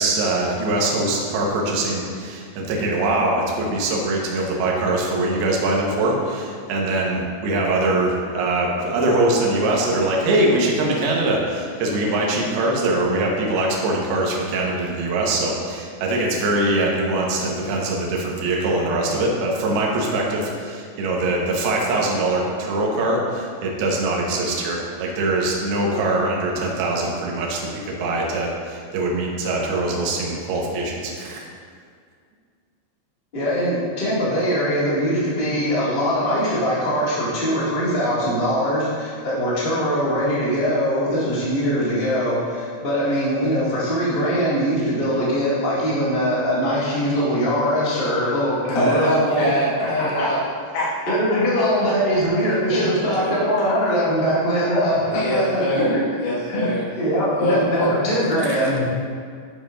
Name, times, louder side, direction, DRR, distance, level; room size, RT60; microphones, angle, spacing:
voice 1, 0.0-31.5 58.4-58.5, right 2 dB, 75° right, -2 dB, 2.9 m, -22 dB
voice 2, 33.3-49.5 49.8-50.3 51.1-56.1 56.5-58.9, equal, 40° left, -9 dB, 0.7 m, -22 dB
voice 3, 48.7-50.4 50.7-50.9 51.6-52.2 52.7-53.3 55.0-56.8 57.4-57.9, left 1 dB, 80° left, -9 dB, 4.0 m, -24 dB
11.5 x 7.1 x 2.5 m, 2.1 s
omnidirectional pair, 4.9 m